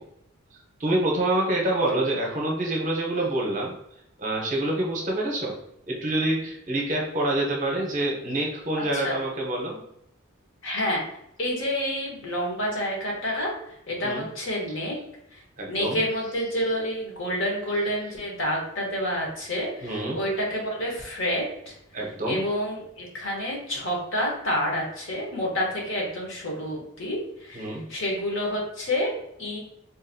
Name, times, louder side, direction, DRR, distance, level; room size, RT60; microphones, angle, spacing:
voice 1, 0.8-3.7 4.2-5.5 5.9-9.8 14.0-14.3 15.6-16.0 19.8-20.2 21.9-22.4 27.5-27.8, right 1 dB, 35° right, -1 dB, 0.7 m, -26 dB
voice 2, 8.7-9.1 10.6-11.0 11.4-15.0 15.3-15.4 15.7-21.7 22.3-29.1 29.4-29.6, equal, 60° left, -1 dB, 1.0 m, -29 dB
4.0 x 2.5 x 2.6 m, 0.77 s
head